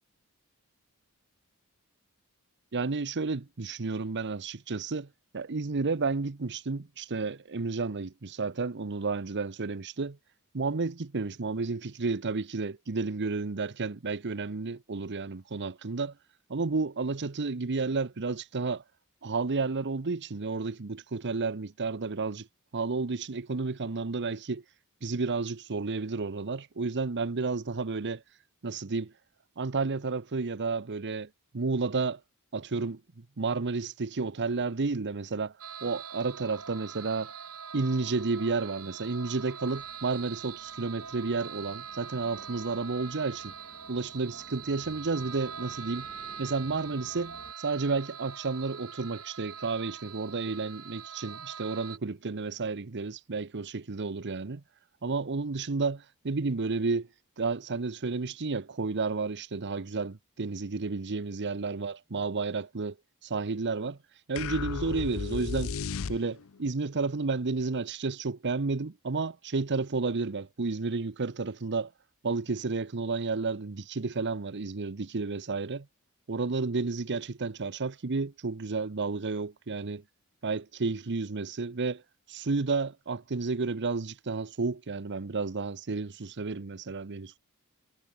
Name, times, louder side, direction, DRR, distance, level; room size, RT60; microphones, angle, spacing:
voice 1, 2.7-5.1 5.3-10.2 10.5-16.1 16.5-18.8 19.2-22.5 22.7-24.6 25.0-28.2 28.6-29.1 29.6-32.2 32.5-35.5 35.8-37.3 37.7-43.5 43.9-46.1 46.4-54.6 55.0-57.1 57.4-63.0 63.2-64.0 64.3-65.7 66.1-71.9 72.2-75.9 76.3-80.0 80.4-82.0 82.3-87.4, right 4 dB, 50° right, 0.8 m, -31 dB
sound 1, 35.6-52.0, right 7 dB, 90° right, 6.5 m, -43 dB
sound 2, 39.6-47.5, equal, 10° left, 3.0 m, -57 dB
sound 3, 64.4-66.6, left 5 dB, 65° left, 0.6 m, -34 dB
head